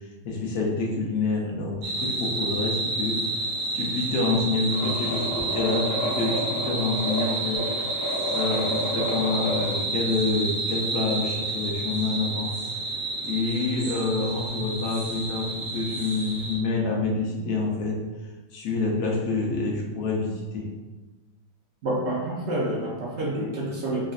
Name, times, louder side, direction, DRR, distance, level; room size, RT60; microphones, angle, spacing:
voice 1, 0.2-3.2 3.7-7.8 8.3-12.6 13.2-18.0 18.5-20.7, left 3 dB, 80° left, -2 dB, 1.3 m, -27 dB
sound 1, 1.8-16.6, right 2 dB, 85° right, 1.3 m, -30 dB
sound 2, 4.7-9.8, equal, 60° left, 1.2 m, -31 dB
voice 2, 21.8-24.1, right 1 dB, 60° right, -4 dB, 0.8 m, -28 dB
4.8 x 2.5 x 2.4 m, 1.2 s
omnidirectional pair, 1.6 m